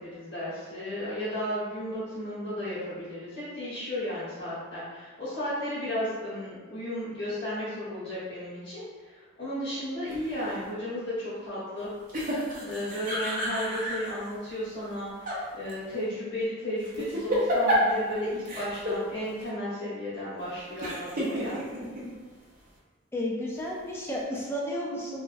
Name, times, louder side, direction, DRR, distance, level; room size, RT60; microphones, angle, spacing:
voice 1, 0.0-11.9 12.6-21.6, left 1 dB, 55° left, -11 dB, 1.1 m, -34 dB
sound 1, 10.1-10.6 12.1-14.2 14.9-15.4 15.7-15.8 16.8-18.1 18.5-19.0 19.4-19.5 20.8-22.1, equal, 40° right, 0.6 m, -30 dB
voice 2, 23.1-25.2, left 1 dB, 10° left, -3 dB, 0.3 m, -32 dB
3.4 x 2.0 x 2.5 m, 1.4 s
head